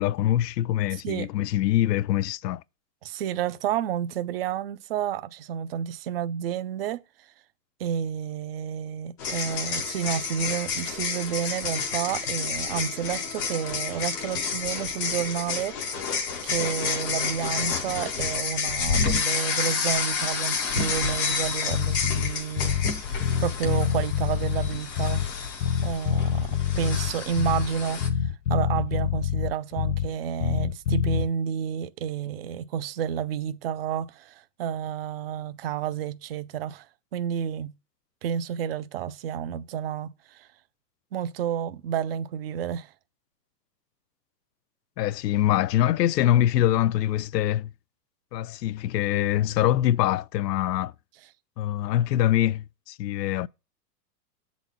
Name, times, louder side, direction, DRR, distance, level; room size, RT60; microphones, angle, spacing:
voice 1, 0.0-2.6 45.0-47.7 48.3-50.9 51.6-53.5, left 12 dB, 80° left, 0.6 m, -24 dB
voice 2, 0.9-1.3 3.0-7.0 7.8-16.0 16.4-22.8 23.4-25.3 25.8-28.0 28.5-36.9 37.1-37.7 38.2-40.5 41.1-42.9, right 8 dB, 40° right, 0.5 m, -30 dB
sound 1, 9.2-28.1, left 5 dB, 15° left, 0.4 m, -30 dB
Bass guitar, 21.7-23.0 23.2-25.4 25.6-27.8 28.0-30.2 30.4-31.3, left 10 dB, 50° left, 0.7 m, -26 dB
8.1 x 4.1 x 7.0 m
supercardioid pair, 165°, 49 cm